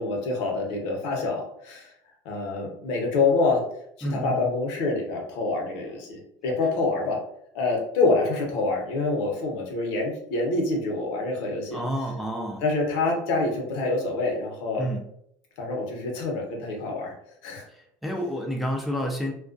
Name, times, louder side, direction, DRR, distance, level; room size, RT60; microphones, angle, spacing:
voice 1, 0.0-1.9 2.2-3.6 4.0-7.2 7.5-11.8 12.6-14.9 15.6-17.1 17.4-17.6, left 3 dB, 75° left, 0 dB, 0.8 m, -26 dB
voice 2, 4.0-4.4 11.7-12.6 14.8-15.0 17.7-19.3, equal, ahead, 0 dB, 0.4 m, -29 dB
2.3 x 2.1 x 2.5 m, 0.71 s
supercardioid pair, 120°, 10 cm